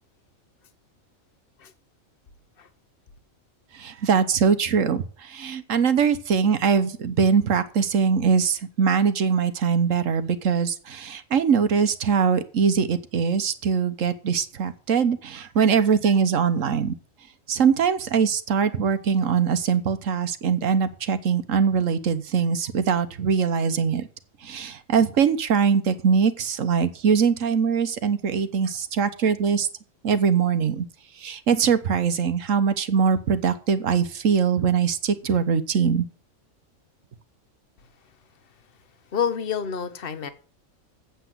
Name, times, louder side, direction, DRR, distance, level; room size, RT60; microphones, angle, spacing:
voice 1, 3.7-16.9 17.5-24.1 24.4-29.7 30.0-30.9 31.2-36.1, right 6 dB, 75° right, 1.4 m, -22 dB
voice 2, 39.1-40.3, left 7 dB, 45° left, 1.2 m, -28 dB
8.2 x 8.0 x 7.6 m
omnidirectional pair, 1.4 m